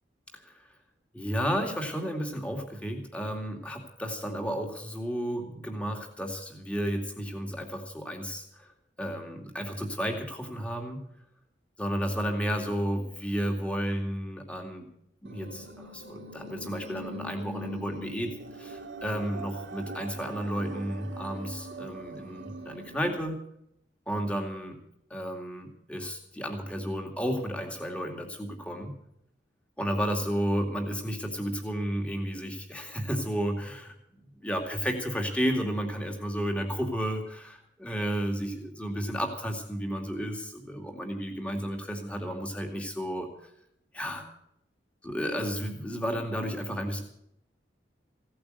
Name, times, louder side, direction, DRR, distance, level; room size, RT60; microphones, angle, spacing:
voice 1, 0.3-0.8 1.1-8.7 9.0-11.0 11.8-14.9 15.2-23.4 24.1-24.8 25.1-28.9 29.8-33.9 34.4-43.5 43.9-44.3 45.0-47.0, equal, 5° left, 2 dB, 2.3 m, -32 dB
sound 1, 15.2-23.2, right 2 dB, 90° right, 1.8 m, -43 dB
16.5 x 8.7 x 8.0 m, 0.74 s
head